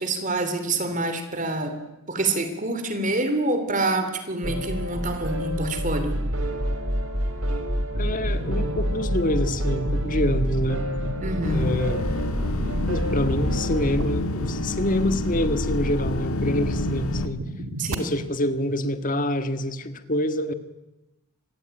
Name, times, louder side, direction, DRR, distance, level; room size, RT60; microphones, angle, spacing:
voice 1, 0.0-1.8 2.1-6.2 11.2-11.8 17.8-18.2 18.6-18.8, right 2 dB, 35° right, 8 dB, 3.3 m, -26 dB
sound 1, 4.4-14.0, equal, 65° right, 4.0 m, -28 dB
voice 2, 7.9-10.9 11.5-12.0 12.9-17.4 18.0-20.5, left 1 dB, 35° left, 9 dB, 1.7 m, -26 dB
sound 2, 7.9-17.9, right 1 dB, 85° right, 2.5 m, -35 dB
sound 3, 11.4-17.3, left 2 dB, 85° left, 1.7 m, -28 dB
26.0 x 21.0 x 9.1 m, 0.97 s
head